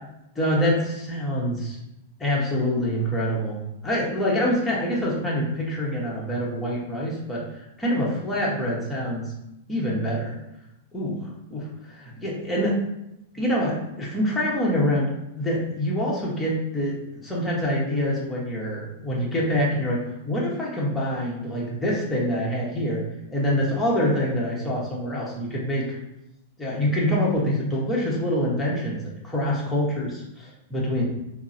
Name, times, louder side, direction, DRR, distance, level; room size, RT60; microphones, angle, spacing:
voice 1, 0.3-1.8 2.2-9.3 9.7-10.4 10.9-12.8 13.3-23.0 23.3-26.0 26.6-31.0, equal, 10° left, -5 dB, 1.0 m, -26 dB
3.7 x 2.0 x 2.6 m, 0.87 s
hypercardioid pair, 115°, 0 cm